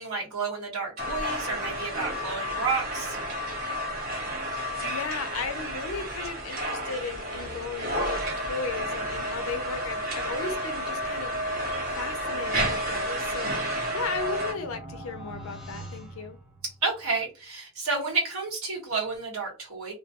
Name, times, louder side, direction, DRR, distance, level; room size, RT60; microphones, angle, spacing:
voice 1, 0.0-3.2 16.8-19.9, right 4 dB, 85° right, 1.1 m, -30 dB
sound 1, 1.0-14.5, equal, 50° right, 0.9 m, -31 dB
voice 2, 4.5-16.4, left 5 dB, 70° left, 0.4 m, -36 dB
sound 2, 13.7-17.1, right 2 dB, ahead, 0.6 m, -44 dB
2.2 x 2.2 x 2.7 m
head